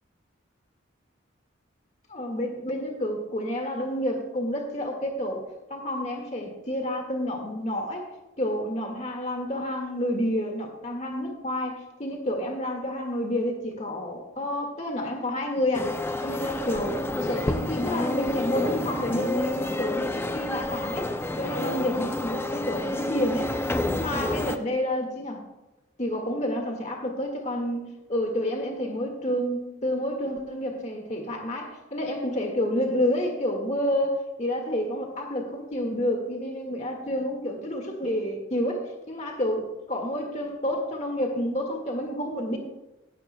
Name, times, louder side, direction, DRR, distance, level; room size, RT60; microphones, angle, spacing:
voice 1, 2.1-5.4 5.7-8.1 8.4-15.9 16.2-21.1 21.4-23.5 23.9-25.4 26.0-42.6, left 1 dB, 35° left, 3 dB, 1.8 m, -29 dB
sound 1, 15.7-24.6, left 1 dB, 10° left, 0.4 m, -29 dB
17.0 x 11.5 x 2.2 m, 0.99 s
head